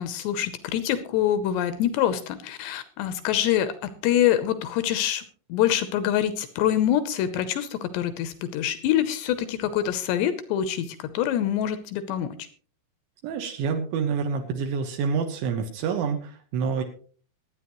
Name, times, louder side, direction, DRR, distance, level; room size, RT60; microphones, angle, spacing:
voice 1, 0.0-5.2 5.5-12.3, left 11 dB, 80° left, 11 dB, 2.5 m, -25 dB
voice 2, 13.2-16.8, right 5 dB, 75° right, 4 dB, 3.4 m, -27 dB
23.5 x 9.2 x 3.1 m, 0.42 s
omnidirectional pair, 5.8 m